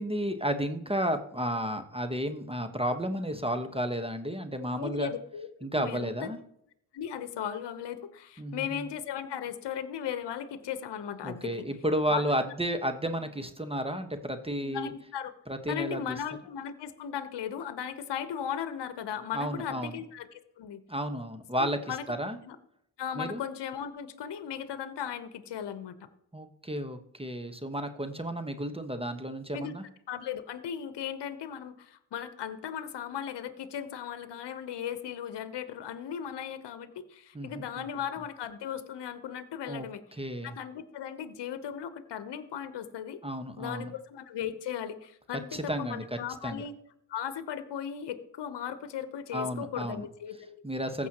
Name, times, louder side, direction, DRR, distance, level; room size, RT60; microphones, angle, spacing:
voice 1, 0.0-5.1 5.6-6.4 8.4-8.8 11.2-14.9 15.5-16.0 19.3-20.0 20.9-22.4 23.1-23.4 26.3-29.8 37.3-37.9 39.7-39.8 40.1-40.6 43.2-43.9 45.5-46.0 46.4-46.6 49.3-50.1 50.6-51.1, equal, 15° right, 7 dB, 1.3 m, -32 dB
voice 2, 4.8-6.3 6.9-11.5 12.1-12.2 14.6-15.3 15.7-20.8 21.6-22.0 22.5-22.6 23.0-26.0 29.5-29.7 30.1-40.0 40.4-43.2 43.6-46.7 47.1-50.6 51.0-51.1, left 9 dB, 65° left, 11 dB, 1.0 m, -37 dB
15.0 x 6.4 x 3.0 m, 0.71 s
supercardioid pair, 40°, 44 cm